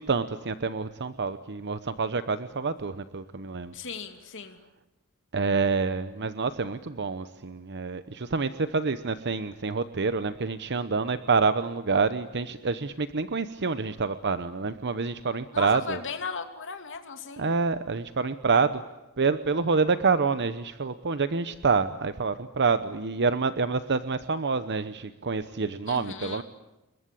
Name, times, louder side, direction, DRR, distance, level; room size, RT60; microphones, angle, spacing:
voice 1, 0.0-3.7 5.3-16.0 17.4-18.8 19.2-26.4, right 4 dB, 50° right, 12 dB, 0.9 m, -27 dB
voice 2, 3.7-4.6 15.5-17.5 25.9-26.4, left 5 dB, 60° left, 6 dB, 2.8 m, -37 dB
28.5 x 22.5 x 8.5 m, 1.0 s
head